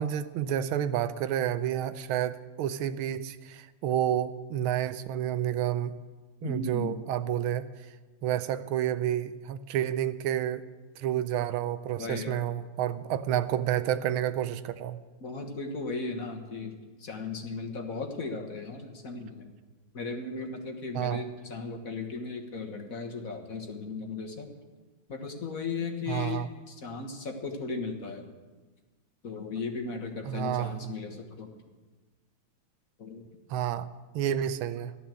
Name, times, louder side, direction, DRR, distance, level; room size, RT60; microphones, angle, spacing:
voice 1, 0.0-5.9 6.4-7.7 8.2-10.6 11.0-15.0 20.9-21.3 26.1-26.5 30.2-30.9 33.5-33.9 34.1-34.9, right 11 dB, 90° right, 13 dB, 1.6 m, -30 dB
voice 2, 6.4-7.0 12.0-12.4 15.2-16.7 17.0-19.5 19.9-24.5 25.1-28.3 29.2-31.5 33.0-33.2, left 4 dB, 45° left, 3 dB, 1.7 m, -36 dB
14.0 x 11.5 x 7.6 m, 1.3 s
omnidirectional pair, 2.2 m